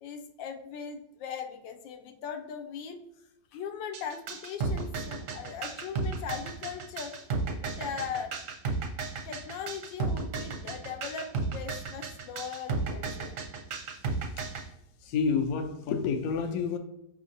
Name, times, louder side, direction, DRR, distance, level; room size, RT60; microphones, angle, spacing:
voice 1, 0.0-3.0 3.5-8.4 9.2-13.4, left 7 dB, 85° left, 1.3 m, -39 dB
sound 1, 3.9-14.6, right 4 dB, 65° right, 0.8 m, -34 dB
voice 2, 15.0-16.8, left 5 dB, 70° left, 0.9 m, -29 dB
4.9 x 3.7 x 2.6 m
omnidirectional pair, 2.0 m